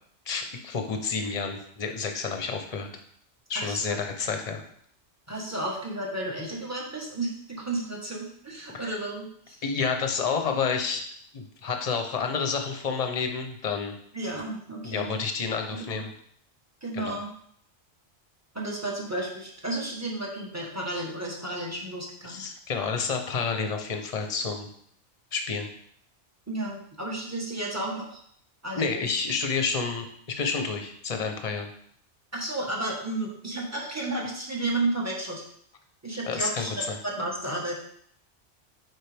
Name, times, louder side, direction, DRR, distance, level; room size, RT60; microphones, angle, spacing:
voice 1, 0.3-2.9 3.5-4.6 9.6-11.1 11.3-13.9 14.8-16.1 16.9-17.2 22.2-24.7 25.3-25.7 28.8-31.7 36.3-37.0, left 5 dB, 35° left, 5 dB, 0.8 m, -29 dB
voice 2, 3.5-4.0 5.3-9.6 14.1-15.2 15.7-16.0 16.8-17.3 18.5-22.4 26.5-28.2 28.6-29.1 32.3-35.4 36.0-37.7, right 2 dB, 15° right, -2 dB, 1.3 m, -32 dB
9.0 x 4.0 x 3.5 m, 0.66 s
omnidirectional pair, 1.2 m